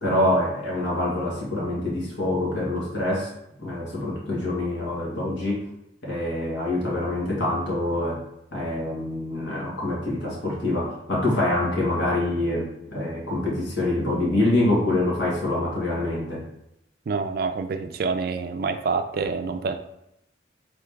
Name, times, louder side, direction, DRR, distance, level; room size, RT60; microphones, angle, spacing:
voice 1, 0.0-3.3 3.6-5.6 6.0-8.2 8.5-16.4, left 1 dB, 90° left, -4 dB, 1.5 m, -25 dB
voice 2, 17.1-19.8, right 4 dB, 55° right, 8 dB, 0.4 m, -27 dB
3.8 x 3.4 x 3.5 m, 0.81 s
head